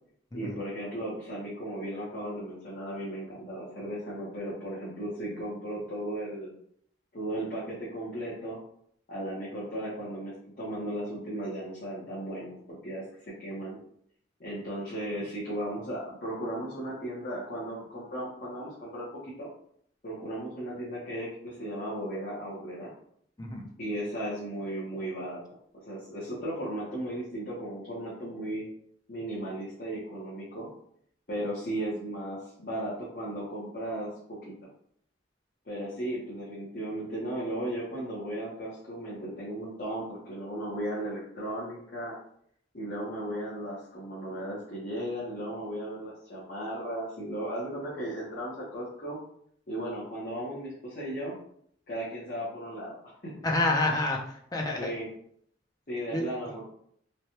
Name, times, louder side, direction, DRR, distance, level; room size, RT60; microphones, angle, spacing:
voice 1, 0.3-6.5 7.1-8.6 9.1-13.0 13.4-13.8 14.4-19.1 19.4-19.5 20.0-22.9 23.8-25.6 25.8-28.7 29.1-30.7 31.3-34.5 35.6-42.2 42.7-49.2 49.7-51.3 51.9-53.3 54.8-55.1 55.9-56.6, right 1 dB, 50° left, -8 dB, 0.8 m, -36 dB
voice 2, 53.4-54.9 56.1-56.3, left 2 dB, 20° left, 0 dB, 0.4 m, -28 dB
3.1 x 2.2 x 2.8 m, 0.66 s
head